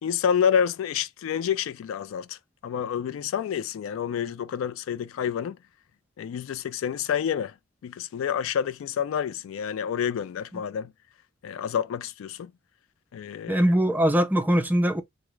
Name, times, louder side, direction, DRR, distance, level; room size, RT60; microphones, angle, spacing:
voice 1, 0.0-5.6 6.2-7.5 7.8-10.9 11.4-12.5 13.1-13.6, left 8 dB, 75° left, 0.3 m, -28 dB
voice 2, 13.5-15.0, equal, 10° right, 0.4 m, -22 dB
3.4 x 2.0 x 3.1 m
head